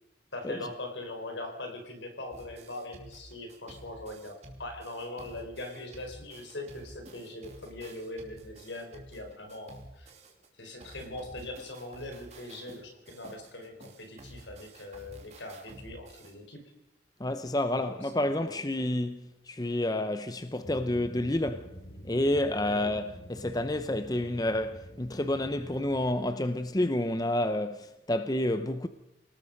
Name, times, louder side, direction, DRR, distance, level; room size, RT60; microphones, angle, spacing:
voice 1, 0.3-10.1 10.6-16.7 17.7-18.5 22.7-22.9, left 2 dB, 80° left, 4.5 m, -41 dB
sound 1, 2.3-10.5 10.8-16.3, right 1 dB, 35° right, 3.0 m, -51 dB
voice 2, 17.2-21.7 22.0-28.9, left 1 dB, 20° left, 0.7 m, -29 dB
sound 2, 20.6-26.1, equal, 55° left, 3.1 m, -47 dB
28.0 x 19.0 x 5.3 m
head